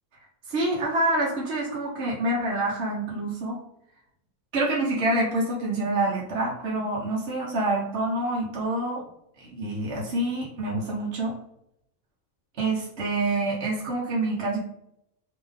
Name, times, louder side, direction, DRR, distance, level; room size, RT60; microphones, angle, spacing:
voice 1, 0.5-3.6 4.5-9.0 9.4-11.3 12.6-14.6, right 2 dB, 50° right, -4 dB, 1.1 m, -27 dB
3.5 x 3.1 x 3.6 m, 0.78 s
omnidirectional pair, 1.6 m